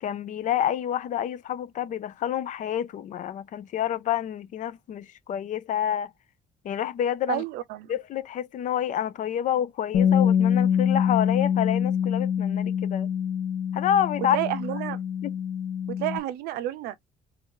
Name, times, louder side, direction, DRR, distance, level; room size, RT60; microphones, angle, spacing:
voice 1, 0.0-6.1 6.6-7.4 7.9-13.1 13.7-14.4 15.2-15.3, left 10 dB, 55° left, 0.5 m, -28 dB
voice 2, 7.3-7.9 14.2-15.0 15.9-17.0, right 14 dB, 90° right, 0.6 m, -30 dB
Bass guitar, 9.9-16.2, left 8 dB, 90° left, 0.8 m, -25 dB
3.3 x 2.7 x 3.7 m
cardioid pair, 100°, 16 cm